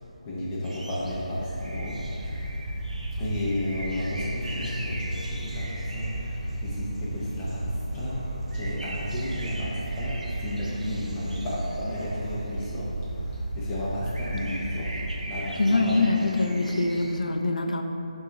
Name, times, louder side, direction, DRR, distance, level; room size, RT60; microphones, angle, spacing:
voice 1, 0.0-2.1 3.2-8.2 8.5-14.9 15.3-16.1, left 1 dB, 15° left, -8 dB, 0.5 m, -33 dB
sound 1, 0.6-17.2, right 1 dB, 85° right, 0.6 m, -41 dB
sound 2, 1.0-15.1, right 1 dB, 20° right, 0.7 m, -34 dB
Human voice / Piano, 4.4-12.4, equal, 60° right, 1.3 m, -49 dB
voice 2, 15.6-17.8, left 2 dB, 80° left, 4 dB, 0.4 m, -24 dB
5.4 x 2.3 x 4.0 m, 2.9 s
figure-of-eight pair, 155°, 4 cm